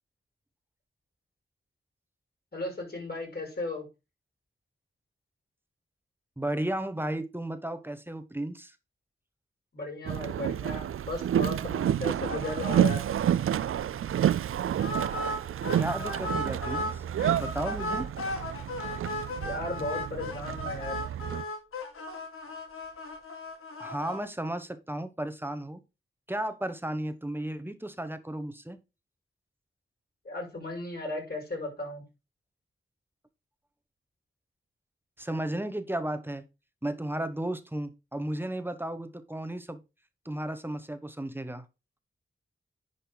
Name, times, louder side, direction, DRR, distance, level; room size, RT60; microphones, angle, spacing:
voice 1, 2.5-3.9 9.7-13.0 19.4-21.0 30.2-32.0, left 2 dB, 50° left, 6.2 m, -35 dB
voice 2, 6.4-8.7 15.8-17.0 17.4-18.1 23.8-25.8 26.3-28.8 35.2-36.5 36.8-39.8 40.2-41.6, right 1 dB, 10° right, 1.2 m, -34 dB
Boat Water vehicle, 10.1-21.4, right 10 dB, 80° right, 0.4 m, -29 dB
sound 1, 12.3-12.8 13.1-13.2 13.5-13.6 14.8-16.9 17.2-24.2, left 1 dB, 90° left, 1.8 m, -36 dB
10.5 x 5.3 x 4.0 m
cardioid pair, 65°, 21 cm